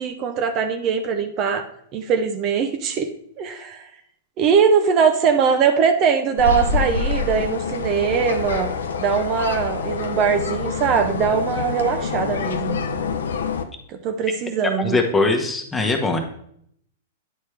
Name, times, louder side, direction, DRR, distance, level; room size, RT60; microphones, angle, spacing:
voice 1, 0.0-1.6 1.9-3.1 3.4-3.9 4.4-8.7 9.0-12.8 13.9-15.0, right 6 dB, 40° right, 6 dB, 0.7 m, -21 dB
sound 1, 6.4-13.6, left 5 dB, 80° left, 0.6 m, -26 dB
voice 2, 14.8-16.2, left 3 dB, 15° left, 3 dB, 1.1 m, -21 dB
9.4 x 4.4 x 3.3 m, 0.68 s
hypercardioid pair, 110°, 0 cm